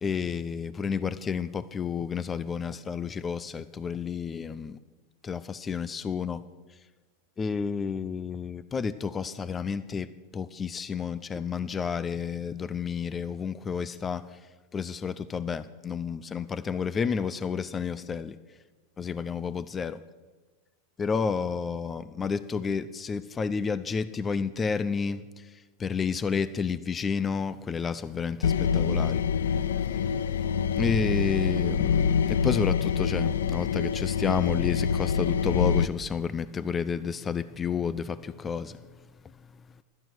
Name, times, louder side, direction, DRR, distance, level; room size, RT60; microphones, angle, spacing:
voice 1, 0.0-4.8 5.2-6.4 7.4-14.4 14.7-18.4 19.0-20.0 21.0-38.8 39.4-39.5, left 6 dB, 20° left, 16 dB, 0.6 m, -31 dB
sound 1, 28.4-35.9, left 7 dB, 90° left, 0.5 m, -26 dB
16.0 x 12.0 x 6.3 m, 1.3 s
hypercardioid pair, 120°, 0 cm